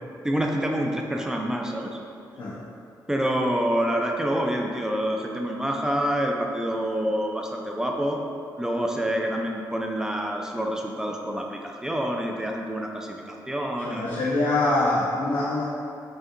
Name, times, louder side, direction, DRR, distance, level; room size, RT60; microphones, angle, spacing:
voice 1, 0.2-1.9 3.1-8.2 8.6-14.3, equal, 10° right, 1 dB, 0.4 m, -27 dB
voice 2, 13.8-15.6, left 2 dB, 75° left, -7 dB, 0.6 m, -24 dB
5.2 x 2.7 x 2.4 m, 2.6 s
cardioid pair, 105°, 8 cm